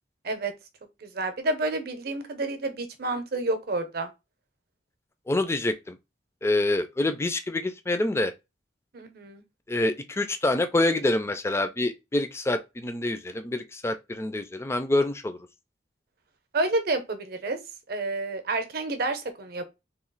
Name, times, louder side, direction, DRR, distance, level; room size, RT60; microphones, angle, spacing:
voice 1, 1.0-4.1 8.9-9.4 16.5-17.6 17.9-19.7, right 2 dB, 60° right, 0.7 m, -29 dB
voice 2, 5.3-6.0 6.4-8.3 9.7-15.4, left 2 dB, 15° left, 0.4 m, -26 dB
2.9 x 2.3 x 3.9 m
head